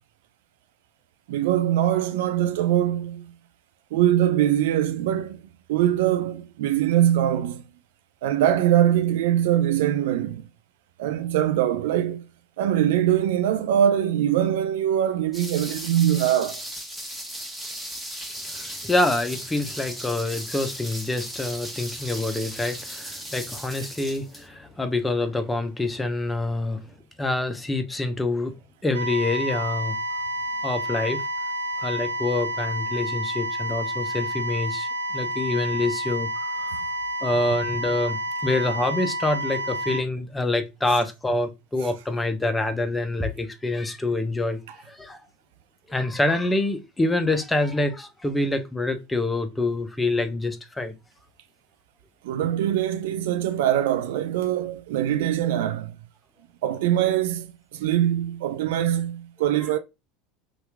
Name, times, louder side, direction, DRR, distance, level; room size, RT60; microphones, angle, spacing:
voice 1, 1.3-3.3 3.9-5.4 5.7-7.6 8.2-10.4 11.0-12.3 12.6-16.6 52.2-55.9 56.6-59.8, right 11 dB, 70° right, 0.3 m, -22 dB
sound 1, 15.3-24.5, equal, 5° right, 1.0 m, -36 dB
voice 2, 18.5-26.8 27.2-28.6 28.8-30.0 30.6-31.2 31.8-36.7 37.2-44.6 44.9-45.2 45.9-50.9, left 2 dB, 15° left, 0.6 m, -26 dB
sound 2, 28.9-40.0, right 1 dB, 85° right, 0.9 m, -29 dB
2.9 x 2.4 x 3.3 m
hypercardioid pair, 80°, 0 cm